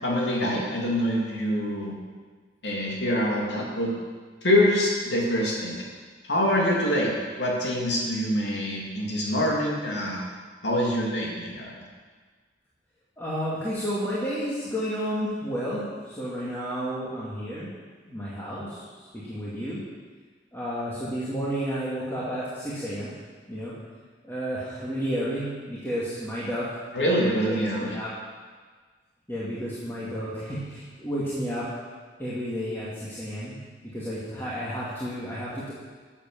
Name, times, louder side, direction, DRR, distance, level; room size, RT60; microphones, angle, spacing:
voice 1, 0.0-1.9 2.6-3.9 4.4-5.8 6.3-7.1 7.4-10.2 10.6-11.7 26.9-27.9, equal, 70° left, -3 dB, 2.9 m, -25 dB
voice 2, 13.2-17.7 18.1-18.8 19.1-19.8 20.5-23.1 23.5-23.7 24.2-26.7 27.3-28.1 29.3-31.7 32.2-33.6 33.9-35.7, equal, 15° left, -10 dB, 2.2 m, -31 dB
11.5 x 7.4 x 6.9 m, 1.5 s
head